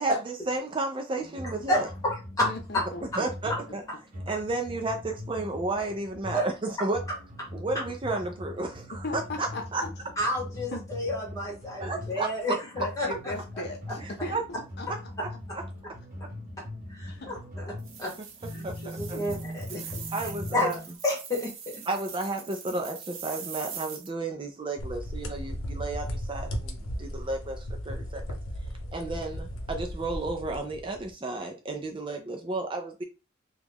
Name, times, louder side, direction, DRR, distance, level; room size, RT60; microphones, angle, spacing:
voice 1, 0.0-1.9 3.1-3.8 4.3-7.0 7.5-9.8 11.8-12.5 14.0-14.4 14.9-15.3 15.5-15.6 18.6-19.2 19.8-20.8 21.9-28.4 28.9-33.0, right 2 dB, 25° right, 0.4 m, -32 dB
sound 1, 1.2-21.0, left 1 dB, 40° right, 1.0 m, -41 dB
voice 2, 1.7-2.5 6.3-6.5 10.2-12.5 13.0-13.1 16.9-17.7 18.0-18.1 19.0-20.0 20.5-20.7 21.0-21.8, left 1 dB, 15° left, 1.4 m, -30 dB
voice 3, 2.5-3.3 9.0-9.9 10.7-10.8 12.7-14.9 17.1-17.4 18.5-19.5, left 2 dB, 55° left, 0.6 m, -38 dB
sound 2, 17.8-24.1, right 7 dB, 80° right, 0.7 m, -42 dB
sound 3, 24.8-31.1, equal, 90° left, 0.8 m, -36 dB
3.0 x 2.3 x 3.5 m
head